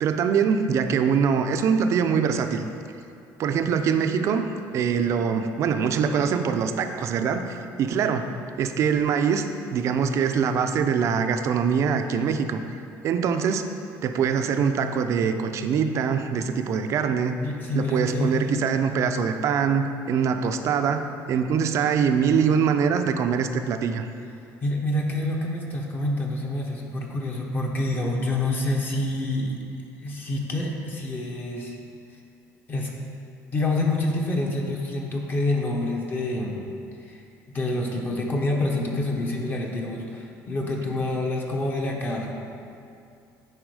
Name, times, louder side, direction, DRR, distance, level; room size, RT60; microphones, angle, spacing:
voice 1, 0.0-2.7 3.4-8.3 8.6-9.5 9.7-12.6 13.0-13.6 14.0-17.4 17.7-24.1, right 6 dB, 50° right, 7 dB, 0.5 m, -23 dB
voice 2, 17.4-18.6 24.6-29.6 30.0-31.8 32.7-32.9 33.5-36.6 37.1-37.2 37.5-42.3, left 2 dB, 30° left, 0 dB, 1.0 m, -27 dB
9.9 x 4.4 x 4.8 m, 2.5 s
cardioid pair, 140°, 6 cm